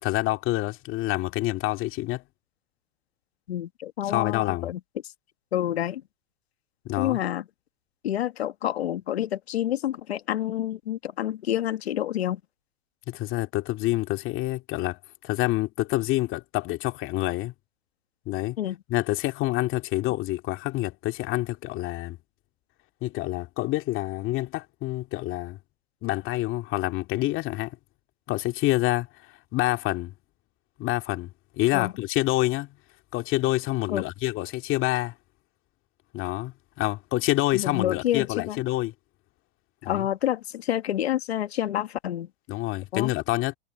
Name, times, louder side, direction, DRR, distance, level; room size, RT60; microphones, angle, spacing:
voice 1, 0.0-2.2 4.0-4.7 6.8-7.2 13.1-15.0 15.2-17.5 18.3-18.6 18.9-22.2 23.0-25.6 26.0-27.8 28.3-29.1 29.5-30.1 30.8-32.8 33.1-35.1 36.1-38.9 39.8-40.1 42.5-43.5, left 17 dB, 40° left, 2.3 m, -27 dB
voice 2, 3.5-4.8 5.5-6.0 7.0-7.4 8.0-12.4 18.6-18.8 31.7-31.9 33.9-34.0 37.5-38.6 39.8-42.3 42.9-43.1, left 12 dB, 90° left, 1.7 m, -28 dB
hypercardioid pair, 120°, 31 cm